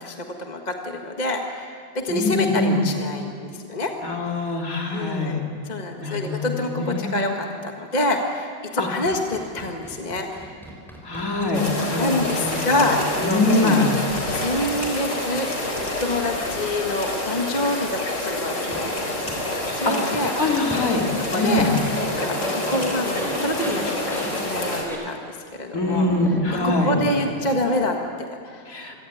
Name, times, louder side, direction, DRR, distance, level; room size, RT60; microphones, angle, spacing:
voice 1, 0.0-3.9 4.9-5.3 5.6-10.6 11.5-13.8 14.3-15.5 16.0-19.1 19.7-20.3 21.3-21.7 22.0-26.1 26.5-28.6, left 1 dB, 25° left, 2 dB, 1.5 m, -27 dB
voice 2, 2.1-2.8 4.0-5.4 6.0-7.2 8.8-8.9 11.0-13.0 13.2-13.8 19.8-21.0 21.3-21.7 25.7-26.9 28.7-29.0, left 2 dB, 45° left, 0 dB, 3.5 m, -24 dB
sound 1, 9.1-13.4 14.3-14.4 15.7-15.8 16.4-16.5 17.2-17.3 18.7-18.8 19.3-19.4 20.1-20.3 20.7-20.9 21.6-21.7 22.0-25.0 25.7-27.8, equal, ahead, 5.5 m, -34 dB
sound 2, 11.5-24.8, left 1 dB, 65° left, 5.1 m, -28 dB
27.0 x 23.0 x 9.3 m, 2.3 s
omnidirectional pair, 2.1 m